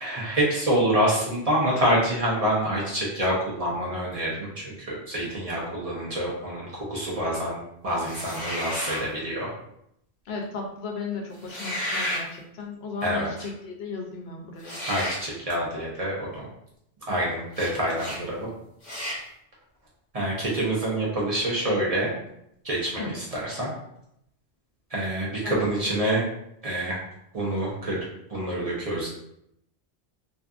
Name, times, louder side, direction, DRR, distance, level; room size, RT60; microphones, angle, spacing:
voice 1, 0.0-7.6 7.8-9.5 13.0-13.5 14.8-16.5 17.1-18.5 20.1-22.1 22.6-23.7 24.9-26.2 26.6-27.0 27.3-28.0 28.3-29.1, right 1 dB, 40° right, -5 dB, 0.6 m, -26 dB
sound 1, 8.0-9.1 11.4-12.3 14.6-15.2 17.5-17.7 18.0-18.2 18.8-19.2, left 1 dB, 45° left, 1.0 m, -32 dB
voice 2, 10.3-14.8 23.0-23.1 25.4-25.7, left 4 dB, 75° left, 1 dB, 0.8 m, -35 dB
2.6 x 2.4 x 2.3 m, 0.77 s
omnidirectional pair, 1.1 m